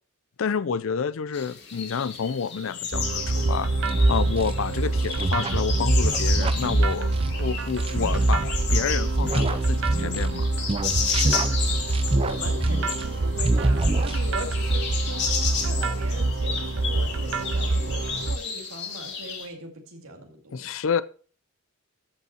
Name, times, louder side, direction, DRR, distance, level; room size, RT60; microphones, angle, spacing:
voice 1, 0.4-3.7 4.1-7.1 7.4-10.5 20.5-21.0, left 6 dB, 70° left, 0.5 m, -29 dB
sound 1, 1.3-19.5, left 6 dB, 50° left, 2.6 m, -33 dB
sound 2, 2.9-18.4, right 2 dB, 60° right, 0.7 m, -27 dB
sound 3, 3.8-10.4 10.7-13.2 13.4-14.5, right 2 dB, 25° right, 0.6 m, -26 dB
voice 2, 11.2-15.3 15.6-20.7, right 1 dB, 80° right, 2.3 m, -39 dB
14.0 x 5.5 x 4.3 m
head